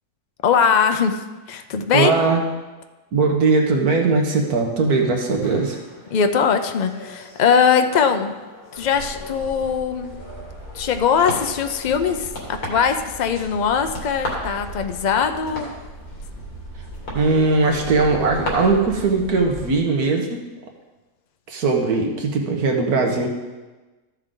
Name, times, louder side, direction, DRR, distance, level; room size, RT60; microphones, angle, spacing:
voice 1, 0.4-2.1 6.1-8.3 8.7-10.2 10.7-15.7, left 6 dB, 70° left, 7 dB, 0.4 m, -21 dB
voice 2, 1.9-2.4 3.1-5.8 17.1-20.4 21.5-23.3, right 3 dB, 85° right, 2 dB, 1.7 m, -19 dB
sound 1, 4.9-18.5, left 1 dB, 85° left, 2.7 m, -38 dB
sound 2, 8.8-19.8, right 1 dB, 50° left, 2.6 m, -38 dB
13.5 x 6.6 x 3.8 m, 1.2 s
omnidirectional pair, 1.6 m